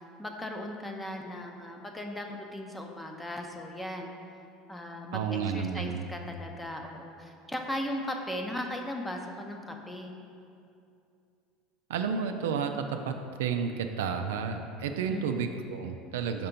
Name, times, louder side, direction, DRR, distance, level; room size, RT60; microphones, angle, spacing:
voice 1, 0.2-4.1 4.7-10.2 15.1-15.3, left 1 dB, 10° left, 2 dB, 0.7 m, -37 dB
voice 2, 5.1-6.0 11.9-16.5, right 6 dB, 90° right, 6 dB, 0.4 m, -31 dB
5.9 x 4.3 x 5.2 m, 2.5 s
supercardioid pair, 105°, 0 cm